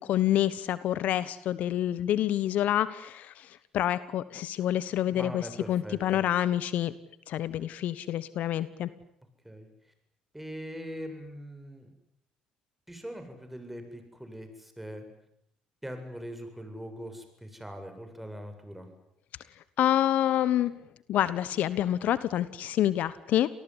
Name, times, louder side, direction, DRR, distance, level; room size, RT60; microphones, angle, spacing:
voice 1, 0.0-5.4 5.7-6.9 7.3-8.9 19.8-20.7 21.1-23.5, left 12 dB, 65° left, 16 dB, 1.1 m, -27 dB
voice 2, 5.1-6.2 9.4-9.9 10.3-11.9 12.9-15.1 15.8-18.9, equal, 5° right, 6 dB, 7.7 m, -41 dB
28.0 x 19.0 x 9.9 m, 0.75 s
hypercardioid pair, 60°, 3 cm